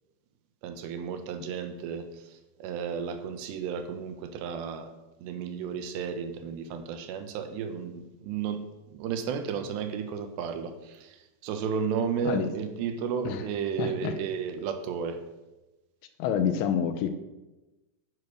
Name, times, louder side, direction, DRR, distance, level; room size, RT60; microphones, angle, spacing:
voice 1, 0.6-4.9 5.2-15.2, right 6 dB, 80° right, 8 dB, 3.3 m, -33 dB
voice 2, 13.8-14.2 16.2-17.1, left 8 dB, 90° left, 9 dB, 3.3 m, -27 dB
10.5 x 9.8 x 6.5 m, 1.0 s
omnidirectional pair, 4.9 m